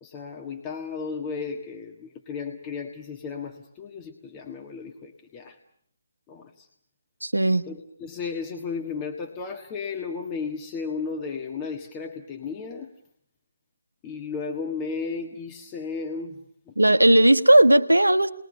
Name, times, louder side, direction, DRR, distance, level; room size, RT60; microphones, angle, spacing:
voice 1, 0.0-5.5 6.3-6.7 7.7-12.9 14.0-16.4, left 5 dB, 20° left, 2 dB, 1.6 m, -34 dB
voice 2, 7.2-7.6 16.8-18.3, right 1 dB, 90° right, 11 dB, 1.2 m, -17 dB
29.5 x 21.0 x 6.7 m, 0.63 s
figure-of-eight pair, 145°, 0 cm